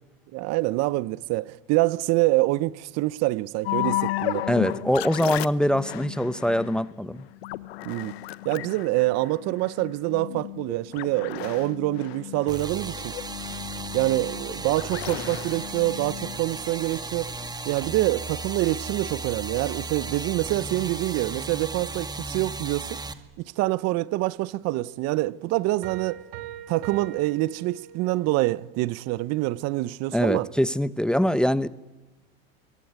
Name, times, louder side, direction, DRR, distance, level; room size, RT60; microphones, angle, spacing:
voice 1, 0.3-4.5 7.8-8.1 8.4-13.2 13.9-17.3 17.6-23.0 23.6-26.2 26.7-30.5, right 19 dB, 55° right, 1.0 m, -26 dB
sound 1, 3.7-16.7, left 17 dB, 80° left, 1.2 m, -34 dB
voice 2, 4.5-7.3 30.1-31.7, equal, 5° left, 1.0 m, -23 dB
sound 2, 12.5-23.1, right 3 dB, 15° right, 2.2 m, -35 dB
sound 3, 25.8-28.3, right 11 dB, 70° right, 3.6 m, -41 dB
26.0 x 23.0 x 9.6 m
hypercardioid pair, 100°, 31 cm